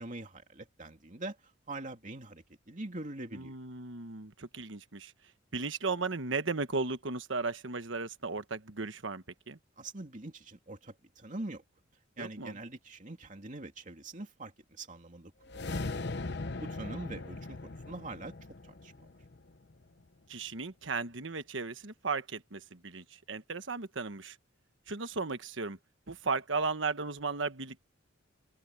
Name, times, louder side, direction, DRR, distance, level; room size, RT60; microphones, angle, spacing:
voice 1, 0.0-3.6 9.8-11.6 12.2-15.7 16.6-18.9, right 2 dB, 40° right, 2.7 m, -44 dB
voice 2, 3.3-5.1 5.5-9.6 12.2-12.6 20.3-24.4 24.9-25.8 26.1-27.9, right 4 dB, 65° right, 1.3 m, -35 dB
sound 1, 15.4-19.8, left 3 dB, 60° left, 1.0 m, -39 dB
head